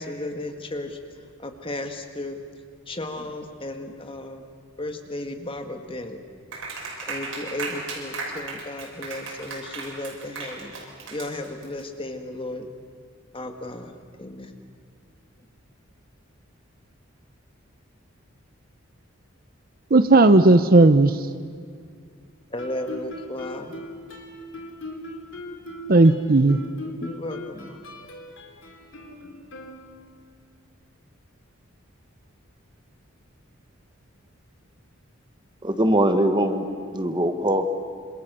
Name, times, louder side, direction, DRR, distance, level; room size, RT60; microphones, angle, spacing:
voice 1, 0.0-2.4 2.9-4.4 4.8-6.2 7.1-10.8 11.1-12.7 13.3-14.5 22.5-23.8 27.0-27.8, left 1 dB, 25° left, 5 dB, 1.9 m, -34 dB
Clapping, 6.5-11.8, right 3 dB, 70° right, 6.4 m, -35 dB
voice 2, 19.9-21.2 25.9-26.6, right 2 dB, 45° right, 11 dB, 0.7 m, -15 dB
Guitar, 22.6-30.3, left 1 dB, 65° left, 3.2 m, -39 dB
voice 3, 35.6-36.7 36.9-37.8, right 1 dB, 20° right, 7 dB, 1.5 m, -22 dB
27.0 x 27.0 x 6.9 m, 2.1 s
head